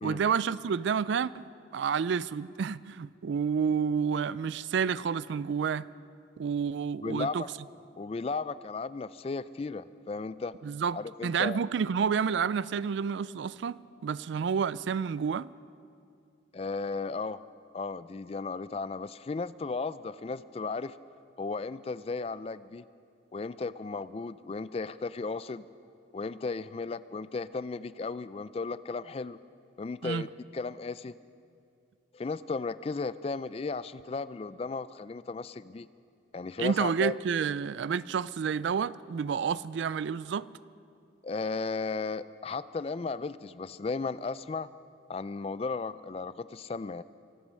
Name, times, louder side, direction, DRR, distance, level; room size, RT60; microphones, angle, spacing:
voice 1, 0.0-1.4 1.7-5.9 6.4-7.4 10.6-15.5 30.0-30.3 36.6-40.5, right 6 dB, 75° right, 0.3 m, -29 dB
voice 2, 7.0-7.5 8.0-10.6 10.9-11.6 16.5-17.4 17.7-21.0 21.4-22.8 23.3-25.6 26.1-29.4 29.8-31.2 32.1-35.9 36.3-37.1 41.2-44.7 45.1-47.0, left 4 dB, 30° left, 0.3 m, -35 dB
24.5 x 8.7 x 6.3 m
head